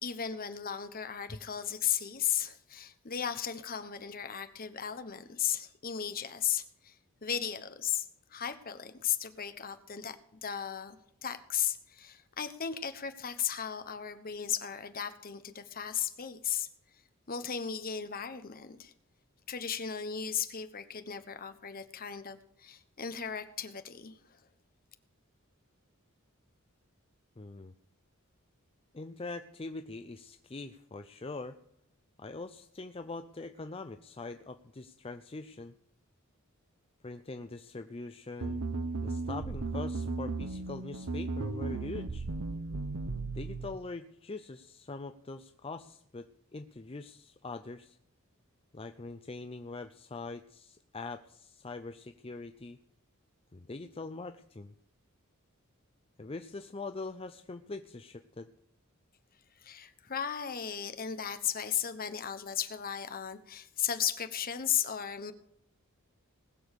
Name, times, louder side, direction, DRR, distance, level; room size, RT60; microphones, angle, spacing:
voice 1, 0.0-7.0 7.2-11.0 11.2-16.7 17.3-18.9 19.5-24.1 59.6-65.3, left 9 dB, 45° left, 10 dB, 1.1 m, -35 dB
voice 2, 27.4-27.7 28.9-31.6 32.2-35.7 37.0-38.6 39.0-42.3 43.3-48.0 48.7-52.8 53.5-54.7 56.2-58.5, left 3 dB, 25° left, 8 dB, 0.6 m, -43 dB
sound 1, 38.4-43.7, right 3 dB, 80° right, 0.8 m, -35 dB
19.5 x 7.0 x 6.6 m, 0.74 s
head